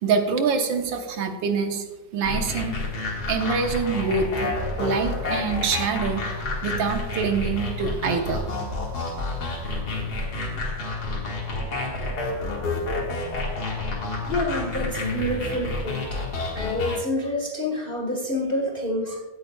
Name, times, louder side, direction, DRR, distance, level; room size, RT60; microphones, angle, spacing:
voice 1, 0.0-1.9 2.1-2.8 3.3-6.2 6.6-8.4, right 5 dB, 80° right, 5 dB, 1.7 m, -25 dB
sound 1, 2.2-17.0, left 2 dB, 55° left, 2.3 m, -29 dB
voice 2, 14.3-16.2 16.5-19.2, left 1 dB, 30° left, 0 dB, 1.4 m, -27 dB
15.5 x 8.8 x 2.3 m, 1.2 s
omnidirectional pair, 2.0 m